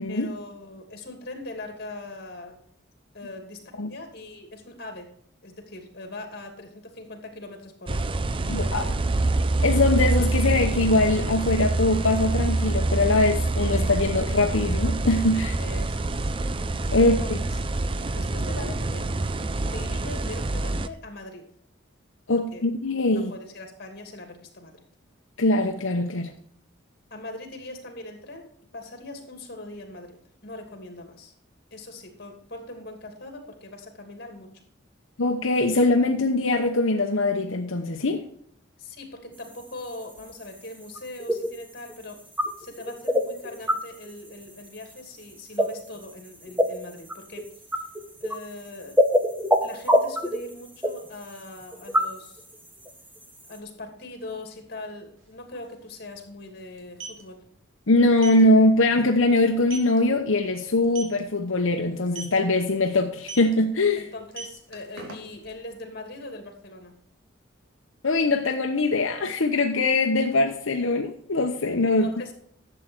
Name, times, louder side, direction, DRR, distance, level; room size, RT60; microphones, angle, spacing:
voice 1, 0.1-2.6 3.1-5.1 5.4-8.1 8.4-9.0 15.6-16.3 17.0-17.6 18.1-19.1 19.7-21.5 22.3-22.6 23.1-24.8 27.1-31.3 31.7-34.6 38.8-42.2 42.6-47.9 48.2-49.0 49.6-52.4 53.5-57.4 64.0-66.9 71.9-72.3, left 2 dB, 50° left, 4 dB, 2.7 m, -41 dB
sound 1, 7.9-20.9, right 2 dB, 25° right, 0.5 m, -26 dB
voice 2, 8.5-8.9 9.6-15.6 16.9-17.4 22.3-23.3 25.4-26.3 35.2-38.2 57.9-64.0 68.0-72.1, left 2 dB, 85° left, 3 dB, 0.9 m, -22 dB
sound 2, 39.3-53.6, equal, 10° right, 1.3 m, -28 dB
sound 3, 55.2-55.3 55.5-55.7 56.7-57.2 58.2-58.4 58.8-59.0 59.4-59.5 59.7-60.0 60.8-61.2 62.1-62.4 63.2-63.5 64.2-65.5, right 4 dB, 80° right, 2.9 m, -37 dB
12.0 x 7.8 x 4.5 m, 0.65 s
head